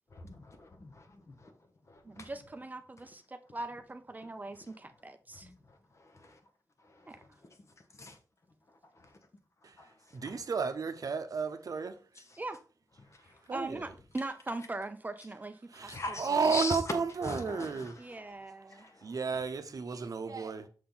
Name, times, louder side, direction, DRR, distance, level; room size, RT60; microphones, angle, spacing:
voice 1, 0.1-1.4 2.2-2.3 6.2-6.3 8.0-8.2 15.9-16.8 17.3-17.9 18.8-18.9, left 2 dB, 45° left, 1.1 m, -39 dB
voice 2, 2.0-5.5 7.1-7.2 12.4-12.6 13.5-16.5 18.0-18.9, right 2 dB, 25° right, 0.5 m, -41 dB
voice 3, 10.1-12.0 13.5-13.9 15.7-18.0 19.0-20.7, right 5 dB, 60° right, 0.7 m, -33 dB
6.6 x 4.3 x 3.9 m
wide cardioid pair, 130°, 7 cm